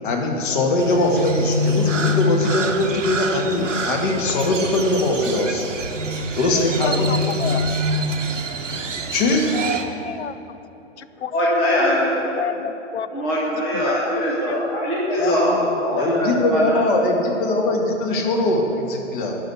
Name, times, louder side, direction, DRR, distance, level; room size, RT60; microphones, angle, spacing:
voice 1, 0.0-5.6 6.4-7.1 7.4-7.5 9.1-9.5 16.0-19.4, left 2 dB, 45° left, 2 dB, 1.6 m, -21 dB
Crow, 0.8-9.8, equal, 85° right, 1.1 m, -25 dB
voice 2, 6.5-7.8 10.0-10.4 11.0-11.3 12.4-13.2 13.7-13.9 14.5-14.7 15.2-15.7 15.9-16.6, left 8 dB, 65° left, 13 dB, 0.5 m, -30 dB
voice 3, 11.1-12.4 13.1-16.8, equal, 5° left, -5 dB, 0.3 m, -22 dB
10.5 x 5.7 x 8.3 m, 3.0 s
figure-of-eight pair, 130°, 37 cm